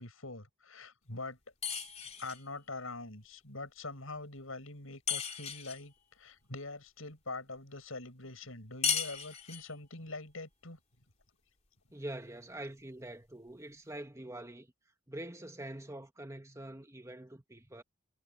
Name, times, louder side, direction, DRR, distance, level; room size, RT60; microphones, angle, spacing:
voice 1, 0.0-1.4 2.2-10.8, left 3 dB, 80° left, 6.5 m, -44 dB
sound 1, 1.6-2.5 5.1-5.9 8.8-9.8, left 7 dB, 35° left, 3.2 m, -35 dB
voice 2, 11.9-14.7 15.1-17.8, right 1 dB, 15° right, 2.0 m, -45 dB
head